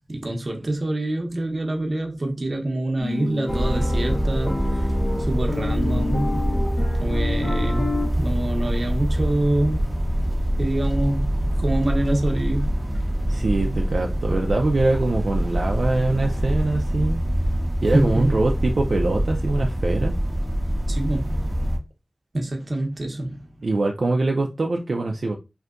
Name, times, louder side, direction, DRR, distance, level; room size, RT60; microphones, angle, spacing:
voice 1, 0.1-4.9 5.3-6.4 7.0-9.9 10.6-12.8 17.9-18.5 20.9-21.6 22.3-23.5, right 1 dB, 60° right, 0.8 m, -26 dB
sound 1, 3.0-8.1, left 2 dB, 55° left, 1.2 m, -30 dB
sound 2, 3.5-21.8, equal, 25° right, 0.7 m, -24 dB
voice 2, 13.3-17.2 17.8-20.1 23.6-25.3, right 2 dB, 80° right, 0.4 m, -23 dB
3.4 x 2.7 x 2.4 m
wide cardioid pair, 65°, 0 cm